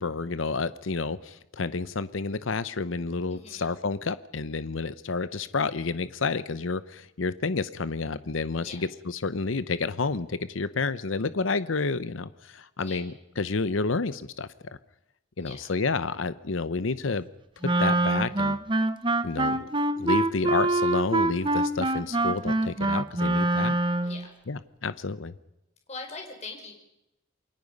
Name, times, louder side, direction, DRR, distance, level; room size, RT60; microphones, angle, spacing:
voice 1, 0.0-14.8 15.4-17.3 17.8-18.6 19.2-19.7 20.0-23.7 24.5-25.3, left 4 dB, 80° left, 14 dB, 0.8 m, -30 dB
voice 2, 3.3-3.6 8.6-8.8 12.8-13.0 15.4-15.7 24.0-24.3 25.9-26.7, left 4 dB, 35° left, 3 dB, 4.9 m, -41 dB
Wind instrument woodwind instrument, 17.6-24.2, right 2 dB, 25° right, 0.9 m, -25 dB
28.5 x 22.0 x 5.4 m, 0.89 s
head